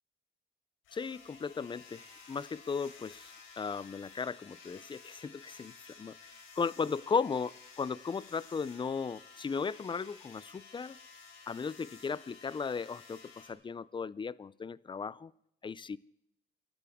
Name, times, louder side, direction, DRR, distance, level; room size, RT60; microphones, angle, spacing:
sound 1, 0.8-13.5, left 5 dB, 85° left, 3.6 m, -54 dB
voice 1, 0.9-6.1 6.6-11.0 11.5-15.3 15.6-16.0, left 5 dB, 25° left, 0.5 m, -36 dB
24.5 x 13.0 x 3.6 m
cardioid pair, 90°, 20 cm